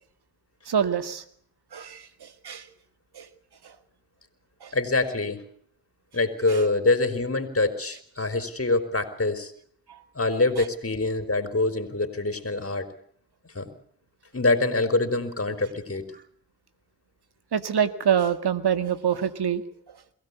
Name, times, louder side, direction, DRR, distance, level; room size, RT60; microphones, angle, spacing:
voice 1, 0.7-1.2 1.7-2.7 3.1-3.3 3.6-3.7 4.6-4.7 6.5-6.6 9.9-10.0 10.6-10.7 17.5-20.0, right 8 dB, 60° right, 11 dB, 2.0 m, -26 dB
voice 2, 4.7-5.4 6.1-9.5 10.1-12.9 13.4-13.7 14.3-16.1, left 2 dB, 30° left, 10 dB, 4.3 m, -25 dB
23.0 x 16.5 x 8.4 m, 0.63 s
supercardioid pair, 50°, 43 cm